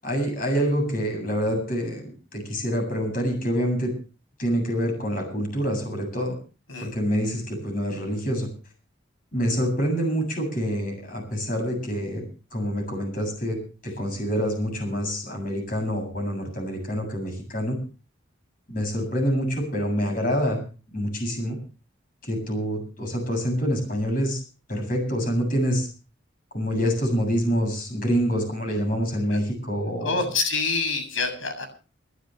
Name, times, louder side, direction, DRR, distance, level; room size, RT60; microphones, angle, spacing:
voice 1, 0.0-3.9 4.4-6.4 6.8-8.5 9.3-12.3 12.5-13.6 13.8-17.8 18.7-20.6 20.9-21.6 22.2-24.4 24.7-25.9 26.5-30.2, equal, 45° left, 3 dB, 7.8 m, -26 dB
voice 2, 30.0-31.7, left 4 dB, 85° left, 5 dB, 7.9 m, -26 dB
29.5 x 12.0 x 3.3 m, 0.37 s
head